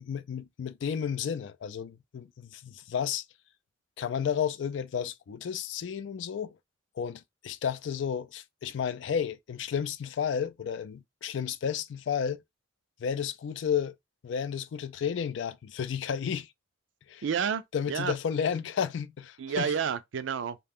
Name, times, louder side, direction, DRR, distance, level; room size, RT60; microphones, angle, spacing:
voice 1, 0.0-3.2 4.0-6.5 7.0-12.4 13.0-13.9 14.2-16.5 17.1-17.2 17.7-19.7, left 7 dB, 70° left, 0.3 m, -32 dB
voice 2, 17.2-18.1 19.4-20.6, right 7 dB, 75° right, 0.4 m, -30 dB
2.4 x 2.2 x 3.5 m
head